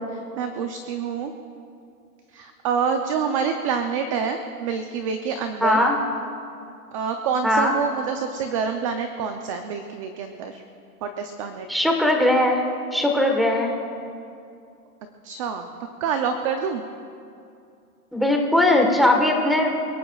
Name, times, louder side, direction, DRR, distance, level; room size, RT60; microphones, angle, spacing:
voice 1, 0.4-1.3 2.3-5.8 6.9-10.6 11.0-11.7 15.2-15.7 16.0-16.8, right 6 dB, 25° right, 6 dB, 0.5 m, -27 dB
voice 2, 5.6-6.0 7.4-7.7 11.7-12.6 12.9-13.7 18.1-19.8, left 1 dB, ahead, 3 dB, 1.3 m, -19 dB
29.0 x 17.5 x 2.4 m, 2.5 s
hypercardioid pair, 150°, 45 cm